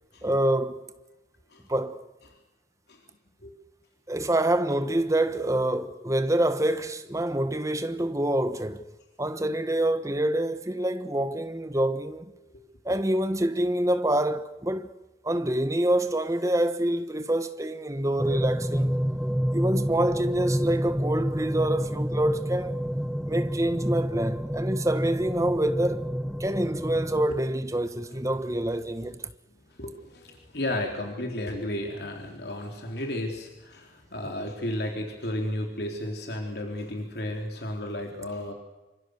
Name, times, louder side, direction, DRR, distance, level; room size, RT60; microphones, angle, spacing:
voice 1, 0.2-0.9 1.7-2.0 4.1-8.9 9.2-12.3 12.8-14.9 15.2-19.0 19.5-22.8 23.3-26.1 26.4-29.2, right 1 dB, 20° right, 1.3 m, -26 dB
sound 1, 18.2-27.3, equal, ahead, 0.9 m, -29 dB
voice 2, 29.7-38.5, left 1 dB, 60° left, 3.9 m, -33 dB
27.5 x 25.5 x 6.7 m
head